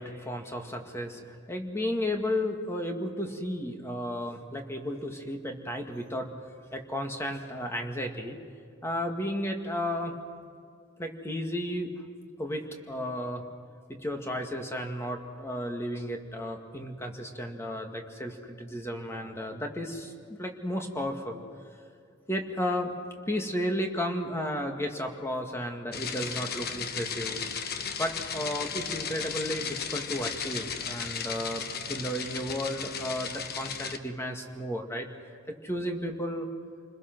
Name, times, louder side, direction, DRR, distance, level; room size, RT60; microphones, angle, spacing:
voice 1, 0.0-6.3 6.7-8.4 8.8-10.2 11.0-11.9 12.4-13.4 13.9-21.4 22.3-22.9 23.3-27.4 28.0-31.6 31.9-35.1 35.6-36.5, equal, 15° left, 3 dB, 2.0 m, -33 dB
sound 1, 25.9-34.0, left 6 dB, 50° left, 1.2 m, -35 dB
29.5 x 21.0 x 6.1 m, 2.2 s
head